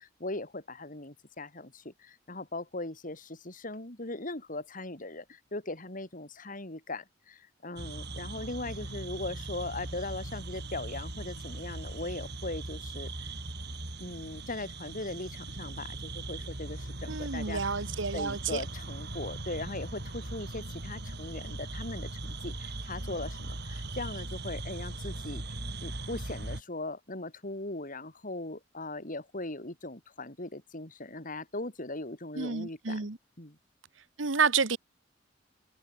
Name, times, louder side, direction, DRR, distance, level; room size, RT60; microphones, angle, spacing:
voice 1, 0.0-13.3 14.0-17.8 18.1-25.4 25.8-33.1 33.4-33.6, left 2 dB, 45° left, 4.2 m, -39 dB
sound 1, 7.8-26.6, right 2 dB, 60° right, 4.2 m, -39 dB
voice 2, 17.1-18.6 32.3-33.2 34.2-34.8, right 5 dB, 80° right, 1.4 m, -29 dB
head